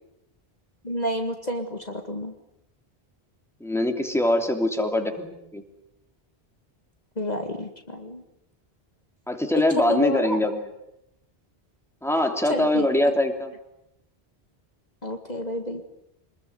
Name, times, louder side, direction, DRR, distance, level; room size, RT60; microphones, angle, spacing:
voice 1, 0.8-2.3 7.2-8.2 9.8-10.4 12.5-13.1 15.0-15.8, left 1 dB, 40° left, 5 dB, 2.0 m, -29 dB
voice 2, 3.6-5.6 9.3-10.6 12.0-13.5, left 1 dB, ahead, 4 dB, 3.1 m, -23 dB
26.5 x 21.0 x 9.6 m, 0.83 s
omnidirectional pair, 1.1 m